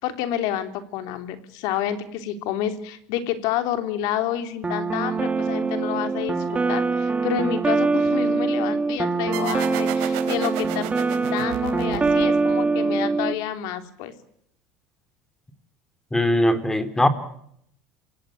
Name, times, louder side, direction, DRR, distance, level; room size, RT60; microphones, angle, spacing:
voice 1, 0.0-10.9 11.3-14.1, left 11 dB, 70° left, 9 dB, 3.2 m, -29 dB
sound 1, 4.6-13.3, right 4 dB, 15° right, 2.3 m, -23 dB
sound 2, 9.3-12.6, right 14 dB, 75° right, 3.7 m, -34 dB
voice 2, 16.1-17.1, left 1 dB, 5° left, 11 dB, 3.4 m, -20 dB
28.0 x 17.0 x 9.1 m, 0.71 s
supercardioid pair, 115°, 7 cm